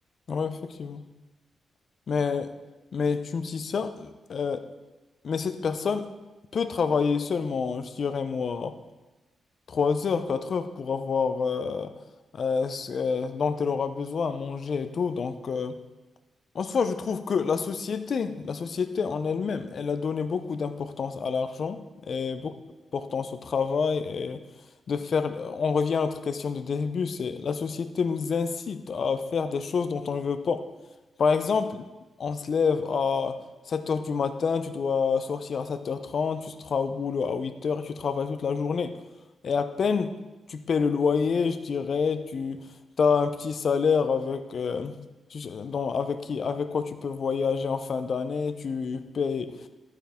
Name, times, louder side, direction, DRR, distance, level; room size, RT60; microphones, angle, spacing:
voice 1, 0.3-1.1 2.1-2.5 2.9-4.7 5.2-6.1 6.5-8.8 9.7-11.9 12.3-15.8 16.5-22.5 22.9-24.4 24.9-30.6 31.2-31.8 32.2-33.4 33.7-38.9 39.4-40.2 40.5-42.7 43.0-49.6, left 5 dB, 45° left, 10 dB, 0.6 m, -28 dB
11.5 x 9.2 x 3.6 m, 1.2 s
wide cardioid pair, 145°, 0 cm